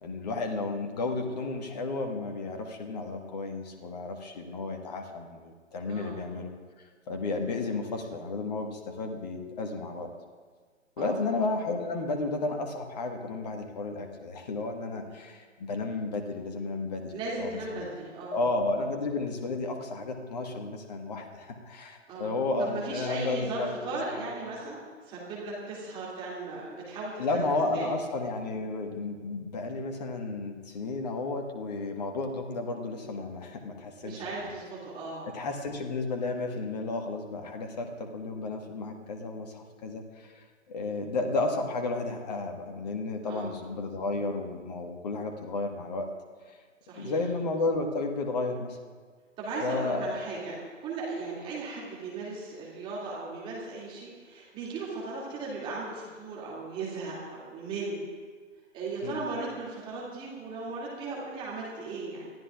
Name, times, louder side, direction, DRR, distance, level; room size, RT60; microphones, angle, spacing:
voice 1, 0.0-6.5 7.1-10.1 11.0-17.8 18.3-23.8 24.1-24.4 27.2-34.2 35.3-40.4 40.7-46.1 46.5-46.6 46.9-48.8 49.6-50.2 59.0-59.2, left 3 dB, 30° left, 4 dB, 1.5 m, -32 dB
voice 2, 17.1-18.4 22.1-22.3 22.6-24.8 25.0-27.5 27.7-27.9 34.0-35.3 43.3-43.5 46.9-47.2 49.4-58.0 58.7-62.3, right 3 dB, 15° right, -5 dB, 2.5 m, -37 dB
25.0 x 15.5 x 2.5 m, 1.5 s
figure-of-eight pair, 135°, 38 cm